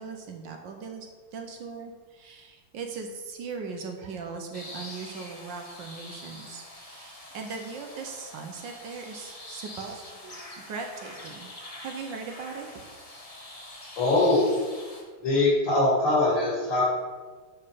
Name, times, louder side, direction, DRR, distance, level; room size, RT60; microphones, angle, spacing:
voice 1, 0.0-10.4 10.7-11.5 11.8-12.7, right 5 dB, 65° right, 3 dB, 1.3 m, -39 dB
sound 1, 4.5-15.0, left 1 dB, 30° left, 0.7 m, -45 dB
voice 2, 14.0-14.5 15.2-16.8, left 2 dB, 60° left, -6 dB, 2.9 m, -22 dB
8.6 x 4.3 x 5.0 m, 1.4 s
omnidirectional pair, 2.3 m